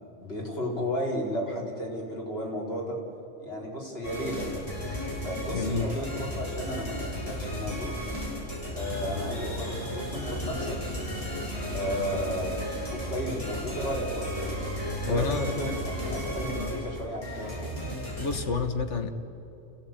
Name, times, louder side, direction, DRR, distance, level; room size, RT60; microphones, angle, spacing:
voice 1, 0.2-3.0 3.4-4.6 5.2-8.0 8.7-10.8 11.7-14.4 15.1-17.5, equal, 60° left, -3 dB, 4.7 m, -33 dB
sound 1, 4.0-18.4, equal, 30° left, 6.0 m, -34 dB
voice 2, 5.5-5.9 15.1-15.7 16.5-16.7 18.2-19.1, left 4 dB, 85° left, 7 dB, 1.7 m, -29 dB
29.0 x 16.0 x 9.0 m, 2.9 s
omnidirectional pair, 1.2 m